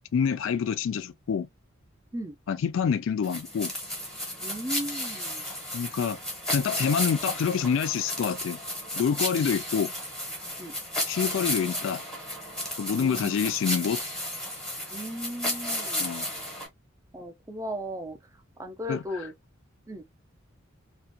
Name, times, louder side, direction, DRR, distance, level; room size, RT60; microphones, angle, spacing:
voice 1, 0.1-1.5 2.5-3.7 5.7-6.2 6.5-8.6 9.0-9.9 11.1-12.0 12.8-14.0 16.0-16.3 18.9-19.0, left 7 dB, 65° left, 0.3 m, -27 dB
sound 1, 3.2-16.7, left 1 dB, 5° left, 0.8 m, -33 dB
voice 2, 4.4-5.5 9.4-9.5 10.6-10.7 12.9-13.3 14.9-16.1 17.1-18.2 18.6-19.3 19.9-20.0, equal, 15° right, 0.4 m, -36 dB
2.4 x 2.1 x 2.5 m
head